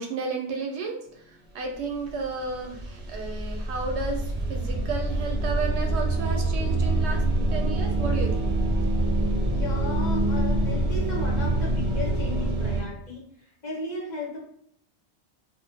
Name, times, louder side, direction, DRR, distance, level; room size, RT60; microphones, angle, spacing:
voice 1, 0.0-8.5, right 4 dB, 80° right, 3 dB, 0.9 m, -33 dB
sound 1, 1.8-1.9 2.1-12.8, right 2 dB, 50° right, 0.7 m, -26 dB
voice 2, 9.5-13.2 13.6-14.4, left 2 dB, 45° left, -4 dB, 0.9 m, -35 dB
2.5 x 2.1 x 2.6 m, 0.67 s
omnidirectional pair, 1.2 m